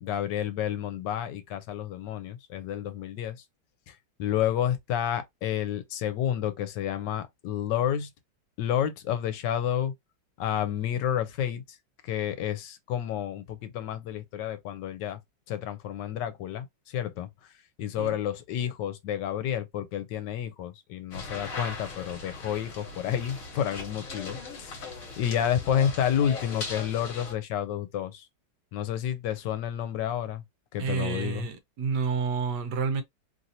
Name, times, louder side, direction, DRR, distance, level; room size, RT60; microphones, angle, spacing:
voice 1, 0.0-3.4 3.9-8.1 8.6-9.9 10.4-11.6 12.0-15.2 15.5-17.3 17.8-28.3 28.7-30.4 30.7-31.4, left 10 dB, 80° left, 1.2 m, -30 dB
sound 1, 21.1-27.3, left 3 dB, 55° left, 1.4 m, -39 dB
voice 2, 30.8-33.0, right 5 dB, 70° right, 1.2 m, -29 dB
3.1 x 2.7 x 2.7 m
omnidirectional pair, 1.9 m